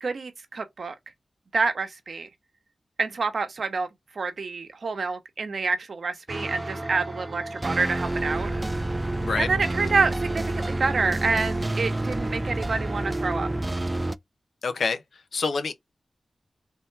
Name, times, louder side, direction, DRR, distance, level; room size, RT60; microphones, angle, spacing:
voice 1, 0.0-0.9 1.5-2.3 3.0-3.9 4.1-8.5 9.4-13.5, right 4 dB, 65° right, 0.9 m, -27 dB
sound 1, 6.3-14.2, right 2 dB, 20° right, 0.3 m, -29 dB
voice 2, 14.6-15.0 15.3-15.7, left 4 dB, 80° left, 0.7 m, -26 dB
3.7 x 2.8 x 4.5 m
wide cardioid pair, 130°, 0 cm